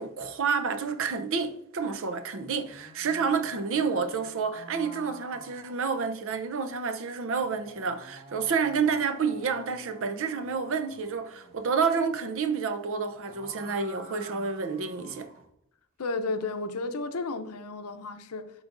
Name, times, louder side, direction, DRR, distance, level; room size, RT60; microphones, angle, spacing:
voice 1, 0.0-15.3, right 5 dB, 65° right, 0.6 m, -29 dB
sound 1, 2.5-6.4 7.4-11.6 13.0-15.5, right 1 dB, 40° right, 1.4 m, -50 dB
voice 2, 16.0-18.5, left 3 dB, 85° left, 0.7 m, -33 dB
10.5 x 3.9 x 2.5 m
head